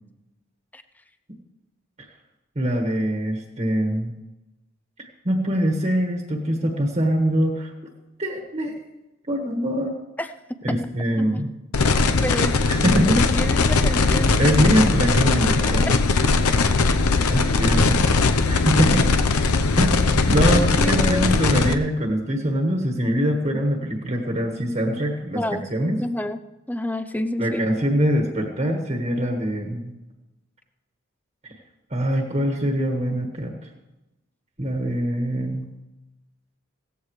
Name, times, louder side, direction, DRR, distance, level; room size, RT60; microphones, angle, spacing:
voice 1, 2.5-4.1 5.0-7.7 8.2-8.8 9.3-10.0 10.6-11.5 12.7-13.2 13.9-14.0 14.4-15.9 17.2-18.1 18.5-19.0 19.8-26.0 27.4-29.9 31.9-33.5 34.6-35.7, equal, 30° right, 2 dB, 1.5 m, -23 dB
sound 1, 11.7-21.7, left 3 dB, 85° left, 0.8 m, -19 dB
voice 2, 12.2-12.5 13.1-14.4 20.5-21.3 25.3-25.6 26.0-26.4 26.7-27.7, left 1 dB, 5° left, 11 dB, 0.5 m, -28 dB
17.5 x 14.5 x 3.2 m, 1.0 s
head